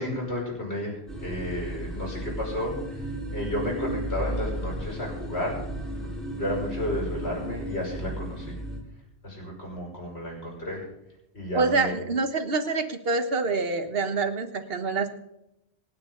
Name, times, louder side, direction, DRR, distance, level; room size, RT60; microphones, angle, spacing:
voice 1, 0.0-5.6 6.3-8.6 9.2-10.8 11.3-11.9, left 1 dB, 90° left, -2 dB, 5.9 m, -32 dB
sound 1, 1.1-8.8, right 1 dB, ahead, 4.4 m, -34 dB
voice 2, 11.5-15.1, right 3 dB, 65° right, 8 dB, 1.5 m, -26 dB
27.0 x 9.1 x 3.9 m, 0.86 s
omnidirectional pair, 1.1 m